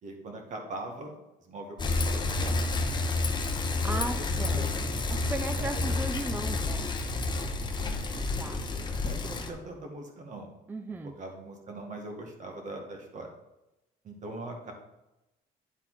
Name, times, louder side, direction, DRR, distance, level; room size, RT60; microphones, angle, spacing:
voice 1, 0.0-1.1 1.4-2.7 3.8-4.7 5.6-6.0 7.8-10.5 11.2-13.3 14.0-14.7, right 2 dB, 45° right, 2 dB, 1.8 m, -42 dB
Bicycle, 1.8-9.5, left 3 dB, 25° left, 0.8 m, -30 dB
voice 2, 3.8-4.7 5.1-6.9 8.4-8.6 10.7-11.2, right 2 dB, 10° right, 7 dB, 0.4 m, -36 dB
sound 1, 4.3-6.3, right 2 dB, 75° right, 2.7 m, -44 dB
10.0 x 4.2 x 4.1 m, 0.95 s
cardioid pair, 110°, 17 cm